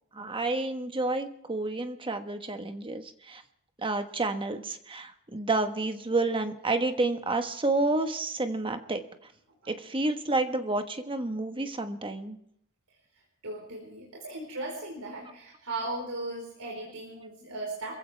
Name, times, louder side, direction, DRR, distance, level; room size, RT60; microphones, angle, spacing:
voice 1, 0.1-3.4 3.8-9.0 9.7-12.4, right 2 dB, 25° right, 7 dB, 1.3 m, -30 dB
voice 2, 13.4-17.9, right 2 dB, 80° right, -2 dB, 4.5 m, -37 dB
27.0 x 15.5 x 3.4 m, 0.70 s
head